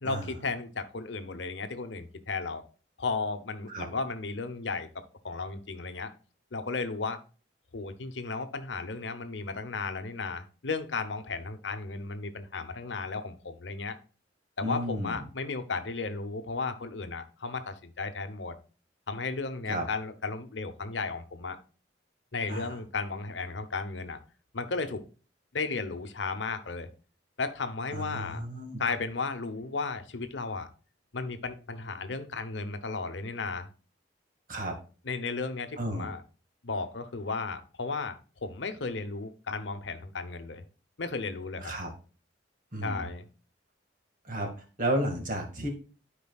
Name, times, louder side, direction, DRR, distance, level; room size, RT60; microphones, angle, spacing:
voice 1, 0.0-2.6 3.0-4.9 5.2-6.1 6.5-7.2 7.7-14.0 14.6-18.5 19.1-21.6 22.3-24.2 24.5-25.0 25.5-26.9 27.4-28.4 28.8-30.7 31.1-33.7 35.0-36.2 36.6-40.6 41.0-41.7 42.8-43.3, left 4 dB, 80° left, 9 dB, 0.9 m, -34 dB
voice 2, 14.6-15.2 19.7-19.8 22.5-22.8 27.9-28.8 34.5-34.7 35.8-36.1 41.6-41.9 42.7-43.1 44.2-44.5 44.8-45.7, right 1 dB, 50° right, 3 dB, 2.0 m, -32 dB
12.0 x 5.0 x 2.4 m, 0.36 s
head